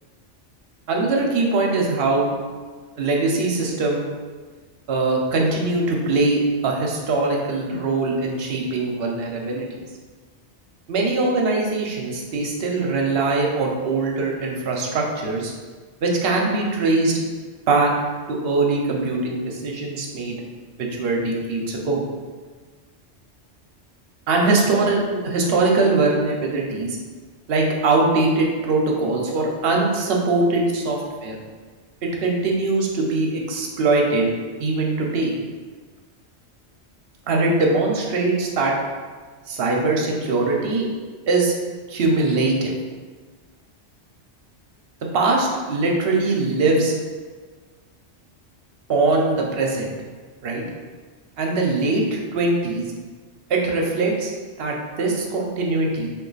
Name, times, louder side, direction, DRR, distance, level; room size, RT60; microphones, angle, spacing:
voice 1, 0.9-2.4 3.0-4.0 4.9-9.8 10.9-15.5 16.0-17.2 17.7-17.9 18.3-20.4 20.8-22.0 24.3-27.0 27.5-31.4 32.0-34.3 34.6-35.3 37.3-38.7 39.5-40.9 41.3-41.5 41.9-42.7 45.1-46.9 48.9-49.9 50.4-50.6 51.4-52.9 53.5-54.3 54.6-56.1, right 3 dB, 65° right, 0 dB, 0.8 m, -21 dB
3.0 x 2.4 x 3.8 m, 1.5 s
omnidirectional pair, 1.2 m